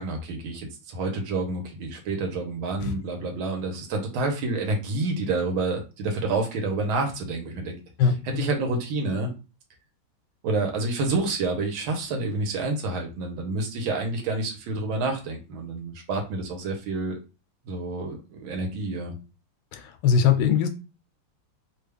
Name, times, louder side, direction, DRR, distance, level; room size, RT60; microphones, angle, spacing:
voice 1, 0.0-9.3 10.4-17.2 17.7-19.1, right 3 dB, 85° right, 1.7 m, -28 dB
voice 2, 8.0-8.4 19.7-20.7, left 7 dB, 85° left, 1.4 m, -22 dB
3.5 x 2.3 x 3.3 m
omnidirectional pair, 2.2 m